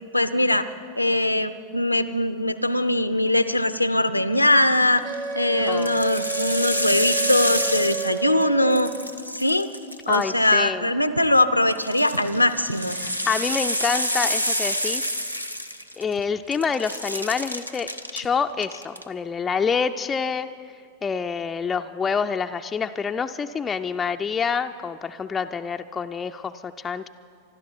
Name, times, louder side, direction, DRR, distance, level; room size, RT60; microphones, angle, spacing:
voice 1, 0.1-0.7 1.0-5.0 5.3-8.9 9.3-9.7 10.1-13.0, left 1 dB, 85° left, 13 dB, 0.6 m, -21 dB
sound 1, 4.8-5.2 5.7-8.4 8.7-10.5 11.7-16.2 16.5-18.2 18.6-19.0, equal, 90° right, 0.7 m, -28 dB
Wind instrument woodwind instrument, 5.0-9.2, right 6 dB, 30° right, 1.1 m, -31 dB
voice 2, 5.6-6.0 10.1-10.9 13.0-15.1 16.0-20.5 21.0-27.1, left 6 dB, 20° left, 5 dB, 0.4 m, -27 dB
25.5 x 12.5 x 4.5 m, 2.3 s
figure-of-eight pair, 90°, 0 cm